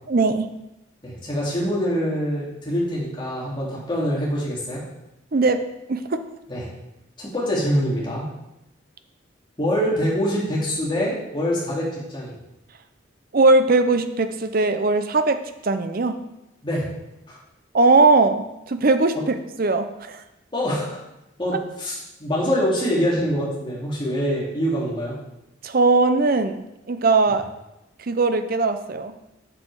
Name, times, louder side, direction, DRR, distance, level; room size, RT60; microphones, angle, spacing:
voice 1, 0.1-0.5 5.3-5.6 5.9-6.2 13.3-16.1 17.7-19.2 19.6-20.2 25.6-26.6 26.9-27.4 28.1-29.1, right 3 dB, 45° right, 9 dB, 0.6 m, -19 dB
voice 2, 1.0-4.8 6.5-6.7 7.2-8.3 9.6-12.3 16.6-16.9 17.3-17.4 20.5-21.0 21.4-25.1 27.3-27.4, equal, 25° left, -6 dB, 2.6 m, -24 dB
7.6 x 6.5 x 4.8 m, 0.90 s
head